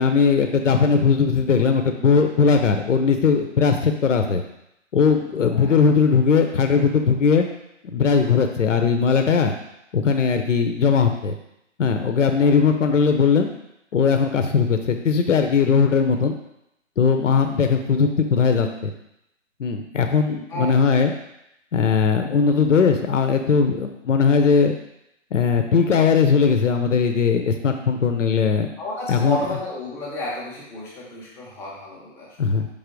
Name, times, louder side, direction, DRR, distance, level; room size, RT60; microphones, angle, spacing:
voice 1, 0.0-4.4 4.9-7.4 7.8-9.6 9.9-11.3 11.8-13.5 13.9-16.3 17.0-18.9 19.6-21.1 21.7-24.7 25.3-28.7 29.1-29.4 32.4-32.7, left 5 dB, 80° left, 6 dB, 0.8 m, -19 dB
voice 2, 20.5-20.9 28.8-32.6, left 1 dB, 5° left, -6 dB, 0.7 m, -32 dB
5.6 x 3.5 x 5.2 m, 0.81 s
hypercardioid pair, 150°, 37 cm